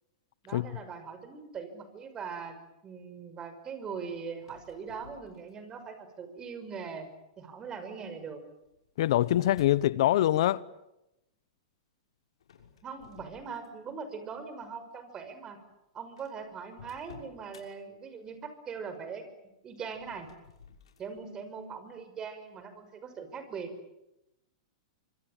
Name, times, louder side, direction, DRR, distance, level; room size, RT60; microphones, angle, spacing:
voice 1, 0.4-2.6 2.8-7.1 7.4-8.4 12.8-15.6 15.9-19.3 19.6-20.3 21.0-23.7, right 6 dB, 25° right, 5.9 m, -41 dB
sound 1, 4.4-5.8 6.5-6.9 8.0-9.9 12.4-14.0 14.4-14.7 15.4-15.5 15.7-15.8 16.2-17.7 19.8-21.1, left 7 dB, 80° left, 6.2 m, -54 dB
voice 2, 9.0-10.6, left 13 dB, 65° left, 0.9 m, -24 dB
25.5 x 24.5 x 9.0 m
hypercardioid pair, 125°, 3 cm